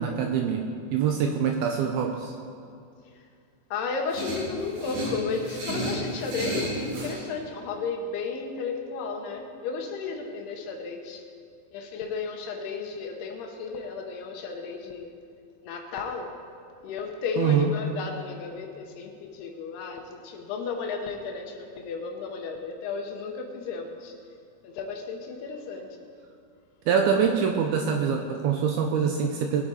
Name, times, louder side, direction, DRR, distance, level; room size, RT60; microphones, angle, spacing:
voice 1, 0.0-2.3 17.4-17.7 26.9-29.7, right 7 dB, 80° right, 3 dB, 2.3 m, -25 dB
voice 2, 3.7-11.3 11.7-15.2 15.6-16.3 16.8-24.2 24.6-26.1, left 4 dB, 75° left, 3 dB, 2.8 m, -33 dB
sound 1, 4.1-7.2, right 1 dB, 65° right, 5.2 m, -32 dB
20.5 x 8.0 x 4.8 m, 2.4 s
omnidirectional pair, 5.1 m